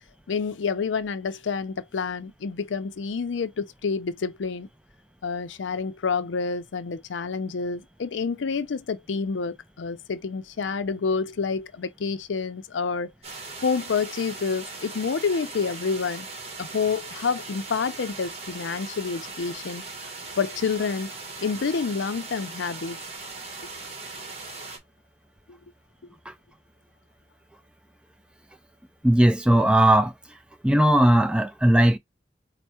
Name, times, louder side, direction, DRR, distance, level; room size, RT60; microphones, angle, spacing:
voice 1, 0.3-4.7 5.2-13.1 13.6-16.3 16.6-19.8 20.4-21.1 21.4-23.0, left 5 dB, 90° left, 0.5 m, -28 dB
sound 1, 13.2-24.8, right 3 dB, 35° right, 1.1 m, -39 dB
voice 2, 29.0-30.1 30.6-32.0, right 1 dB, 5° right, 0.3 m, -18 dB
4.5 x 2.1 x 4.2 m
head